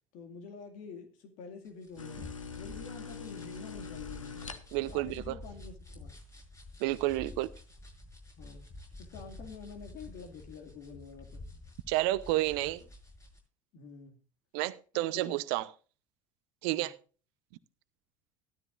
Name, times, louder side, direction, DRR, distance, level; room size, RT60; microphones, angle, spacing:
voice 1, 0.1-2.3 2.6-4.4 4.8-6.2 8.4-8.7 9.0-11.4 13.7-14.2 14.9-15.3 16.7-16.9, left 5 dB, 50° left, 2.2 m, -48 dB
sound 1, 1.6-13.4, left 2 dB, 15° left, 6.1 m, -49 dB
sound 2, 2.0-5.0, left 5 dB, 80° left, 1.1 m, -43 dB
voice 2, 4.7-5.3 6.8-7.5 11.9-12.8 14.5-15.7 16.6-16.9, right 17 dB, 55° right, 0.7 m, -30 dB
14.5 x 13.0 x 2.5 m
figure-of-eight pair, 65°, 17 cm